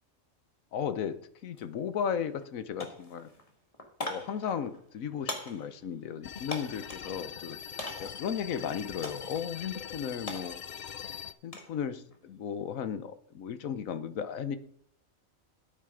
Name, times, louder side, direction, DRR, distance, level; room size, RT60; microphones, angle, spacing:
voice 1, 0.7-3.3 4.0-7.6 8.0-10.6 11.4-14.6, left 8 dB, 80° left, 13 dB, 1.3 m, -35 dB
sound 1, 1.5-1.7 2.0-2.5 2.8-7.1 7.8-8.3 9.0-9.5 9.8-11.8 12.1-12.5, left 1 dB, 25° left, 1.8 m, -41 dB
sound 2, 6.2-11.3, left 8 dB, 55° left, 0.5 m, -42 dB
10.0 x 9.0 x 5.1 m, 0.64 s
omnidirectional pair, 1.4 m